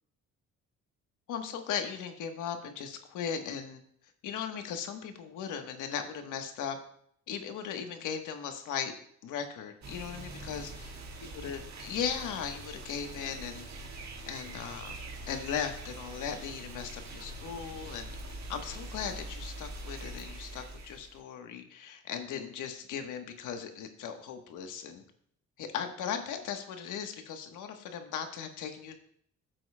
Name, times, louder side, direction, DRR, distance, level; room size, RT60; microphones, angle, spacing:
voice 1, 1.3-3.8 4.2-6.8 7.3-8.9 9.2-10.9 11.2-13.6 14.3-15.0 15.3-25.0 25.6-28.9, left 7 dB, 85° left, 6 dB, 1.2 m, -37 dB
sound 1, 9.8-21.2, right 2 dB, 65° right, 1.7 m, -44 dB
15.0 x 7.7 x 2.2 m, 0.65 s
cardioid pair, 90°, 30 cm